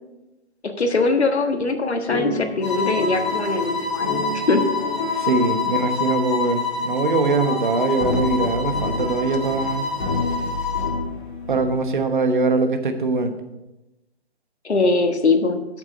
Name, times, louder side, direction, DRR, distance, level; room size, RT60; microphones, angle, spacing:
voice 1, 0.6-4.6 14.6-15.6, left 3 dB, 85° left, 6 dB, 1.5 m, -21 dB
sound 1, 2.1-11.9, left 3 dB, 50° left, 2.6 m, -30 dB
sound 2, 2.6-11.0, left 5 dB, 25° left, 2.2 m, -27 dB
voice 2, 5.2-9.9 11.5-13.3, right 3 dB, 50° right, 7 dB, 1.1 m, -22 dB
8.4 x 7.2 x 5.1 m, 0.98 s
hypercardioid pair, 165°, 32 cm